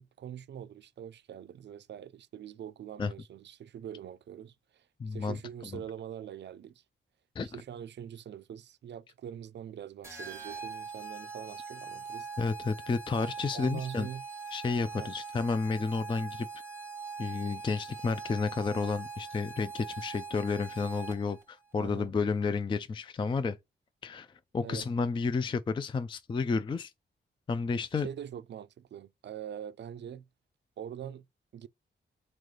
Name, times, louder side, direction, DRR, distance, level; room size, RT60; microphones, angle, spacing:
voice 1, 0.0-6.8 7.4-12.3 13.5-14.2 14.9-15.1 21.8-22.1 24.6-24.9 27.9-30.2 30.8-31.2 31.5-31.7, right 9 dB, 60° right, 0.4 m, -43 dB
voice 2, 5.0-5.8 7.4-7.5 12.4-14.1 14.5-16.5 17.2-23.6 24.0-24.3 24.5-26.9 27.5-28.1, left 4 dB, 25° left, 0.3 m, -31 dB
sound 1, 10.0-21.4, right 5 dB, 15° right, 0.9 m, -42 dB
4.3 x 3.2 x 3.8 m
wide cardioid pair, 145°, 21 cm